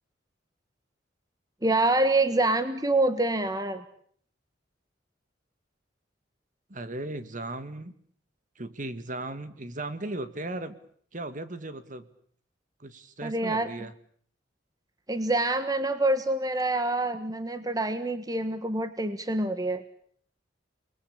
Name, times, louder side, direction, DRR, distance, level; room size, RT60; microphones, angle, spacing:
voice 1, 1.6-3.8 13.2-13.7 15.1-19.8, right 2 dB, 20° right, 10 dB, 1.4 m, -26 dB
voice 2, 6.7-7.9 8.6-10.8 11.1-12.1 12.8-13.9, right 2 dB, 45° right, 11 dB, 1.9 m, -36 dB
30.0 x 20.5 x 8.7 m, 0.62 s
head